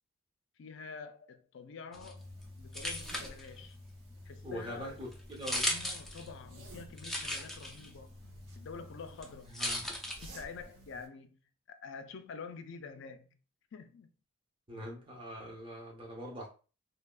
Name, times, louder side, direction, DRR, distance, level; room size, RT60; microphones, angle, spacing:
voice 1, 0.6-3.8 4.3-4.9 5.7-8.2 8.6-9.6 10.2-11.4 11.7-13.4 13.7-14.1, left 5 dB, 65° left, 0.4 m, -47 dB
sound 1, 1.9-10.7, left 1 dB, ahead, 0.4 m, -40 dB
sound 2, 2.2-11.1, right 1 dB, 75° right, 0.8 m, -57 dB
voice 2, 4.4-5.7 9.5-9.9 14.7-16.5, equal, 25° right, 0.8 m, -43 dB
sound 3, 6.2-11.0, right 2 dB, 45° right, 1.5 m, -63 dB
3.3 x 2.2 x 2.3 m
head